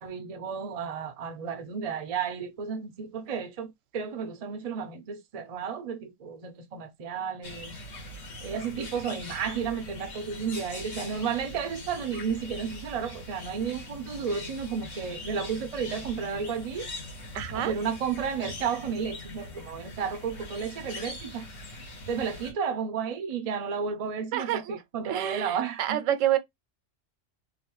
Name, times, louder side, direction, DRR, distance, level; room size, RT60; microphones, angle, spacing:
voice 1, 0.0-7.7 8.4-16.9 17.5-21.5 22.1-26.0, right 6 dB, 55° right, 0.4 m, -32 dB
sound 1, 7.4-22.5, left 1 dB, 80° left, 1.5 m, -42 dB
voice 2, 17.3-17.7 24.3-26.4, right 12 dB, 85° right, 0.9 m, -28 dB
3.0 x 2.4 x 2.9 m
omnidirectional pair, 1.3 m